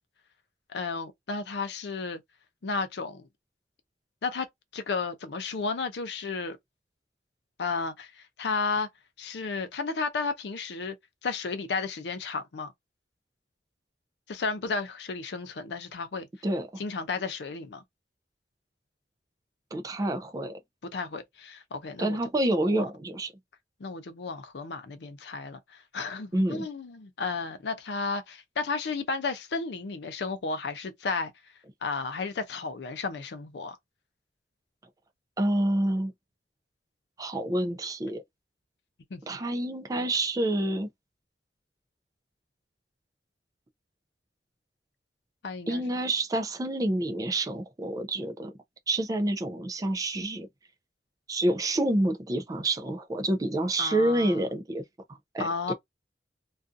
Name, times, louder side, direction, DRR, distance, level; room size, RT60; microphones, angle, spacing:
voice 1, 0.7-2.2 2.6-3.3 4.2-4.5 4.7-6.6 7.6-8.9 9.2-11.0 11.2-12.7 14.3-16.3 16.8-17.8 20.9-22.2 22.6-22.8 23.8-31.3 31.8-33.8 39.1-39.4 40.0-40.1 45.4-45.8 53.8-54.4 55.4-55.7, left 4 dB, 70° left, 0.5 m, -33 dB
voice 2, 19.7-20.5 22.0-23.3 26.3-26.7 35.4-36.1 37.2-38.2 39.3-40.9 45.7-48.5 48.9-50.5 51.3-54.8 55.1-55.7, right 1 dB, 20° right, 0.4 m, -28 dB
2.5 x 2.3 x 2.4 m
head